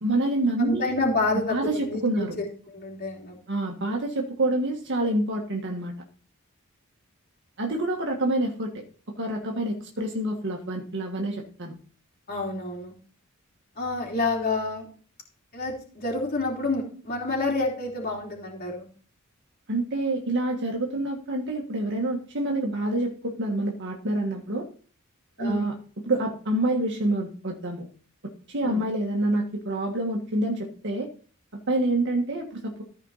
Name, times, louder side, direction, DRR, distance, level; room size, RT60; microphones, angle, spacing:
voice 1, 0.0-0.9 1.5-2.4 3.5-5.9 7.6-8.8 9.2-11.7 19.7-24.7 25.4-25.7 26.0-27.8 28.5-31.1 31.5-32.8, right 1 dB, 55° right, 1 dB, 1.6 m, -27 dB
voice 2, 0.6-2.5 2.7-3.4 12.3-12.9 13.8-14.9 15.5-18.9 25.4-25.7 28.6-28.8, left 2 dB, 40° left, -3 dB, 3.3 m, -28 dB
14.5 x 5.2 x 4.1 m, 0.41 s
head